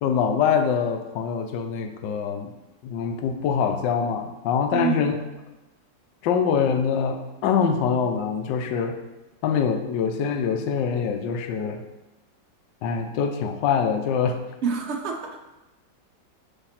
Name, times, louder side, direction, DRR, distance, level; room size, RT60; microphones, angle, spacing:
voice 1, 0.0-2.5 2.8-5.2 6.2-9.0 9.4-11.8 12.8-14.4, left 6 dB, 80° left, 6 dB, 1.3 m, -24 dB
voice 2, 4.7-5.1 14.6-15.4, right 6 dB, 55° right, 2 dB, 0.8 m, -27 dB
5.7 x 3.4 x 5.7 m, 1.0 s
omnidirectional pair, 2.0 m